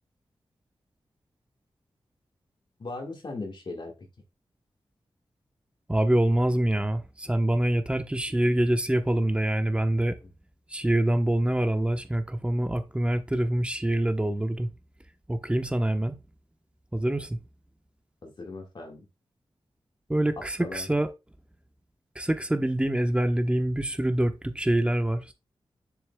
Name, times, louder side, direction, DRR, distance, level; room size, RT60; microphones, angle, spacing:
voice 1, 2.8-4.1 10.2-10.3 18.2-19.1 20.4-20.9, left 3 dB, 55° left, 1.8 m, -38 dB
voice 2, 5.9-10.2 10.7-14.7 15.3-16.1 16.9-17.4 20.1-21.1 22.1-25.3, right 1 dB, 10° right, 1.0 m, -25 dB
7.1 x 6.7 x 2.3 m
wide cardioid pair, 100°, 10 cm